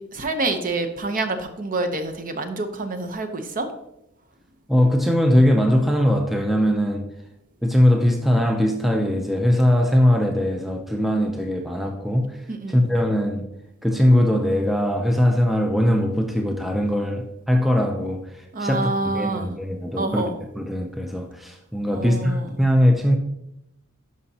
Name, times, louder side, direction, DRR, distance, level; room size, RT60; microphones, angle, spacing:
voice 1, 0.0-3.7 12.5-12.8 18.5-19.5 20.0-20.3 21.9-22.5, right 2 dB, 40° right, 0.7 m, -27 dB
voice 2, 4.7-7.1 7.6-12.4 12.7-13.5 13.8-20.3 20.6-23.2, equal, ahead, 0.5 m, -20 dB
11.0 x 5.1 x 2.8 m
head